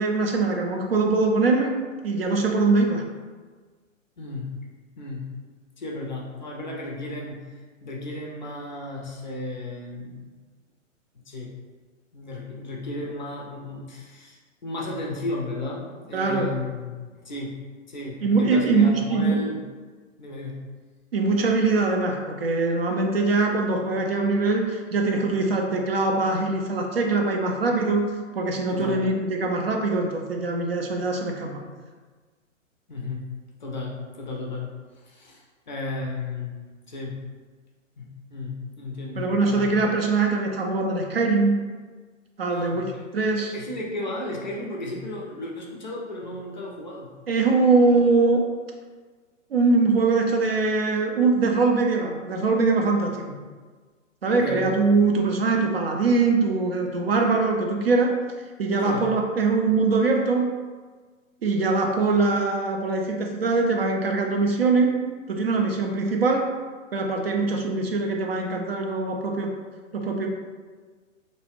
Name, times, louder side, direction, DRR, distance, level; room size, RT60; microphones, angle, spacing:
voice 1, 0.0-1.7 2.0-3.0 16.1-16.5 18.2-19.4 21.1-31.6 39.2-41.6 42.4-42.8 43.1-43.5 47.3-48.5 49.5-53.4 54.2-58.1 58.6-60.5 61.4-64.9 65.3-66.5 66.9-69.5 69.9-70.3, right 3 dB, 50° right, 2 dB, 0.4 m, -22 dB
voice 2, 4.2-4.6 5.0-5.3 5.8-10.3 11.1-11.5 12.1-17.6 17.9-19.6 20.2-20.6 28.7-29.0 32.9-33.3 33.6-34.7 35.0-36.6 36.9-37.2 38.0-39.8 42.5-42.8 43.4-47.1 54.3-54.7 58.8-59.1, left 2 dB, 40° left, -2 dB, 0.4 m, -34 dB
2.5 x 2.3 x 3.1 m, 1.4 s
figure-of-eight pair, 120°, 39 cm